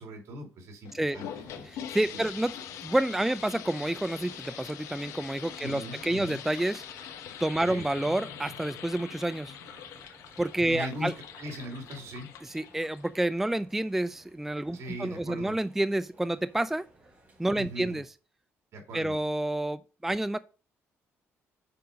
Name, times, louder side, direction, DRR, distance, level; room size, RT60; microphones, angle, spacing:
voice 1, 0.0-1.7 2.1-2.2 5.6-6.4 7.6-7.8 10.7-11.1 11.4-12.3 14.7-15.5 17.5-18.0 18.7-19.1, equal, 65° right, 3.1 m, -40 dB
sound 1, 0.8-13.4, left 9 dB, 90° left, 1.0 m, -43 dB
sound 2, 1.2-18.1, right 2 dB, 30° right, 4.1 m, -56 dB
voice 2, 1.6-6.8 7.4-9.6 10.4-11.1 12.4-16.9 17.4-18.1 18.9-20.4, right 1 dB, 5° right, 0.3 m, -29 dB
6.9 x 5.1 x 5.1 m
cardioid pair, 110°, 5 cm